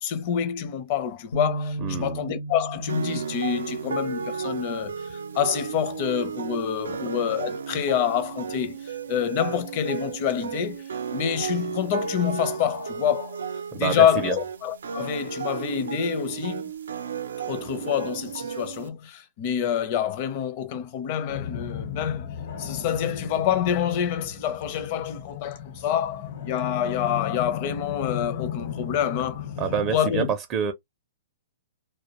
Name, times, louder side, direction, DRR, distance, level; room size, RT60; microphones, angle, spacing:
voice 1, 0.0-13.4 13.7-16.7 17.4-22.3 22.6-29.5 29.9-30.3, left 9 dB, 45° left, 0.6 m, -27 dB
sound 1, 1.3-5.6 6.1-6.3 7.1-7.6, right 2 dB, 85° left, 0.6 m, -36 dB
voice 2, 1.8-2.2 13.7-14.4 29.6-30.3 30.5-30.7, right 7 dB, 25° right, 0.4 m, -27 dB
sound 2, 2.9-18.9, right 6 dB, 85° right, 0.4 m, -33 dB
sound 3, 21.3-30.0, left 9 dB, 65° left, 0.9 m, -35 dB
2.3 x 2.1 x 2.9 m
hypercardioid pair, 145°, 0 cm